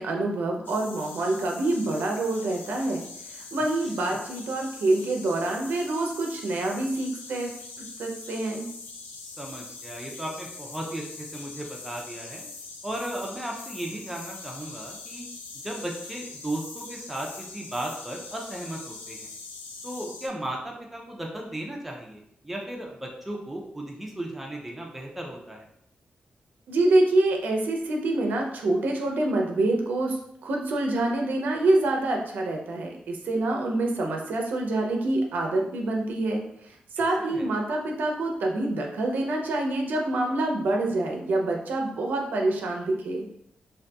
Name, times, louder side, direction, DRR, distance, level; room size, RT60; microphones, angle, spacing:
voice 1, 0.0-7.5 7.8-8.7 26.7-30.2 30.4-43.3, right 2 dB, 75° right, 1 dB, 0.4 m, -26 dB
sound 1, 0.6-20.3, left 4 dB, 80° left, 0.4 m, -42 dB
voice 2, 9.2-12.5 12.8-15.2 15.6-19.3 19.8-25.7 37.0-37.5, right 1 dB, 5° right, -1 dB, 0.4 m, -36 dB
2.6 x 2.5 x 2.2 m, 0.71 s
wide cardioid pair, 170°, 3 cm